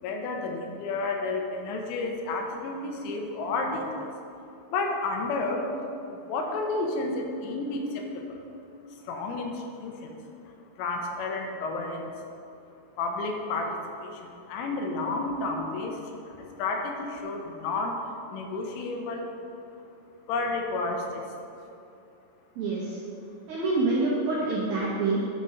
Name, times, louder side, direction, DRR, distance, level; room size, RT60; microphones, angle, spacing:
voice 1, 0.0-4.1 4.7-5.7 6.1-8.4 9.1-10.2 10.8-12.1 13.0-16.0 16.3-18.0 18.3-19.3 20.3-21.2, left 3 dB, 85° left, 2 dB, 3.4 m, -31 dB
voice 2, 22.6-23.0 23.5-25.2, right 3 dB, 75° right, -7 dB, 2.1 m, -26 dB
10.0 x 5.2 x 5.7 m, 2.7 s
omnidirectional pair, 5.8 m